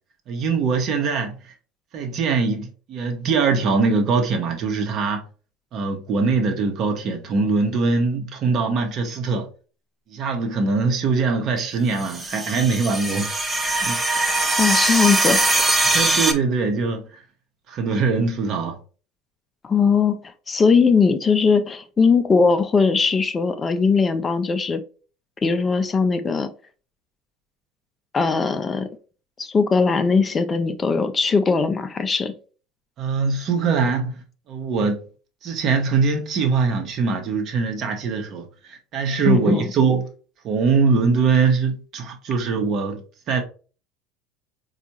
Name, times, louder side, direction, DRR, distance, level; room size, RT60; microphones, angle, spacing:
voice 1, 0.3-1.5 1.9-5.2 5.7-9.5 10.1-13.3 13.7-14.3 15.8-17.2 17.7-18.8 33.0-35.0 35.4-40.0 40.4-43.0 43.3-43.4, right 4 dB, 50° right, 0.9 m, -22 dB
sound 1, 12.0-16.3, right 2 dB, 15° right, 0.6 m, -21 dB
voice 2, 14.6-15.5 19.6-24.8 25.4-26.5 28.1-28.9 29.4-32.3 39.3-39.7, left 5 dB, 25° left, 0.4 m, -20 dB
4.3 x 2.4 x 2.9 m
hypercardioid pair, 75°, 0 cm